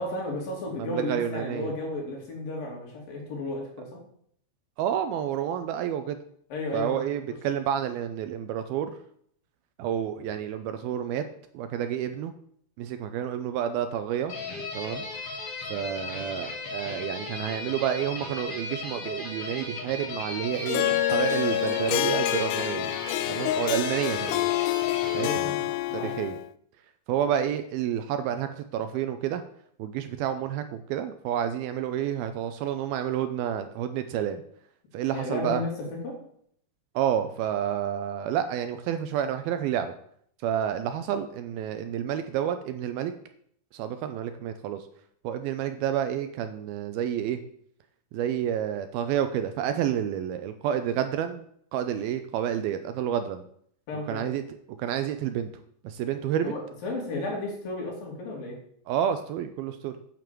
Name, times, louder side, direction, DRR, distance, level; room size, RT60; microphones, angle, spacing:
voice 1, 0.0-4.0 6.5-7.4 25.2-25.6 25.9-26.1 35.1-36.2 53.9-54.2 56.4-58.6, left 2 dB, 60° left, -1 dB, 4.4 m, -33 dB
voice 2, 0.8-1.7 4.8-6.2 6.7-8.9 9.8-11.3 11.5-12.3 12.8-14.3 14.7-15.1 15.7-22.9 23.3-24.5 25.1-25.5 25.9-26.4 27.1-29.4 29.8-34.4 34.9-35.6 37.0-39.9 40.4-43.1 43.7-44.8 45.2-47.4 48.1-51.4 51.7-53.4 54.1-54.4 54.8-55.5 55.8-56.5 58.9-59.9, right 9 dB, 80° right, 9 dB, 2.3 m, -29 dB
sound 1, 14.3-25.3, left 2 dB, 40° left, 3.2 m, -36 dB
Harp, 20.7-26.5, left 14 dB, 90° left, 2.7 m, -27 dB
9.3 x 6.8 x 7.6 m, 0.66 s
omnidirectional pair, 4.7 m